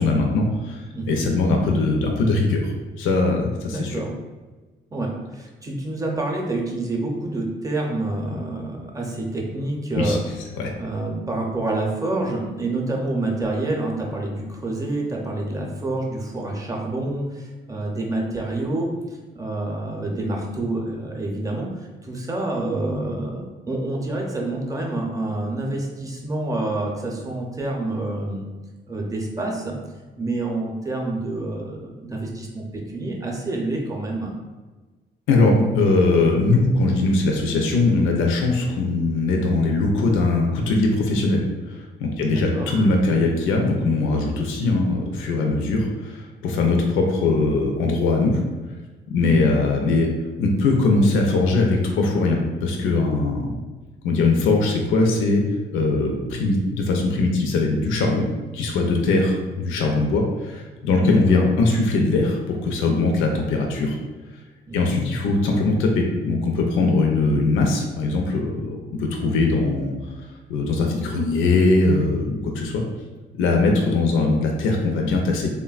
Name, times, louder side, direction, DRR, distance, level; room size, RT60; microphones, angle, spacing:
voice 1, 0.0-4.0 9.9-10.2 10.6-10.7 35.3-48.4 49.1-50.1 50.4-53.6 54.0-55.4 55.7-58.2 58.5-64.0 64.7-69.9 70.5-72.8 73.4-75.5, left 3 dB, 90° left, 1 dB, 0.4 m, -21 dB
voice 2, 0.9-1.3 3.7-4.1 4.9-10.2 10.8-18.9 19.3-28.4 28.9-29.8 30.2-34.3 42.2-42.7 49.2-49.5 61.0-61.8 64.7-64.9, right 2 dB, 15° right, -1 dB, 0.6 m, -28 dB
3.3 x 2.1 x 2.3 m, 1.3 s
cardioid pair, 90°, 20 cm